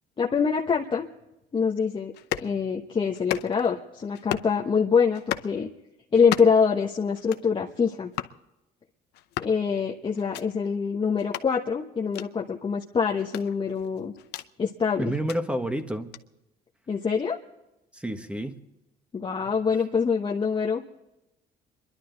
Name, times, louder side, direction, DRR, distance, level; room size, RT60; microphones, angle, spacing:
voice 1, 0.2-1.1 1.5-2.1 2.4-5.7 6.1-8.1 9.4-14.1 14.6-15.1 16.9-17.4 19.1-20.8, left 6 dB, 30° left, -1 dB, 1.1 m, -25 dB
Impact Melon with target, 2.1-2.5 3.1-3.7 4.1-4.6 5.1-5.5 6.1-6.7 7.1-7.5 8.1-8.4 9.1-9.6 10.2-10.4 11.2-11.5 12.1-12.3 13.2-14.5 15.1-15.4 16.1-16.2, left 13 dB, 80° left, 0.7 m, -34 dB
voice 2, 15.0-16.1 17.9-18.5, right 1 dB, 5° right, 7 dB, 1.4 m, -29 dB
27.0 x 11.5 x 4.0 m, 0.95 s
cardioid pair, 110°, 17 cm